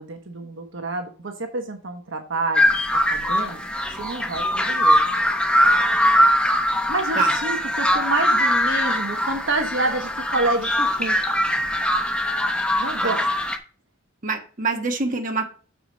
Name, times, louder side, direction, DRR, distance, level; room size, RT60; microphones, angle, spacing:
voice 1, 0.0-2.7 3.1-3.6 4.0-5.0 6.9-11.2 12.8-13.3, right 2 dB, 65° right, 5 dB, 1.2 m, -28 dB
sound 1, 2.5-13.6, equal, 5° left, 0.9 m, -21 dB
voice 2, 14.2-15.5, right 4 dB, 40° right, 2 dB, 1.3 m, -25 dB
6.7 x 5.0 x 6.1 m, 0.39 s
head